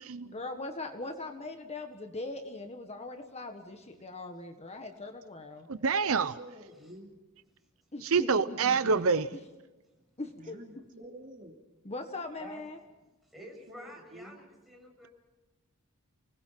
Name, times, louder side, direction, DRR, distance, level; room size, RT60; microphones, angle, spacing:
voice 1, 0.2-5.7 7.9-9.0 9.3-9.4 10.2-10.6 11.8-12.8, left 2 dB, 30° left, 5 dB, 1.6 m, -40 dB
voice 2, 5.7-6.4 8.1-9.3, right 5 dB, 70° right, 13 dB, 0.7 m, -26 dB
voice 3, 6.2-7.1 10.3-11.6 13.7-14.4, right 1 dB, 35° right, 2 dB, 3.1 m, -49 dB
voice 4, 13.3-15.1, equal, ahead, 0 dB, 7.1 m, -49 dB
30.0 x 20.0 x 5.8 m, 1.1 s
head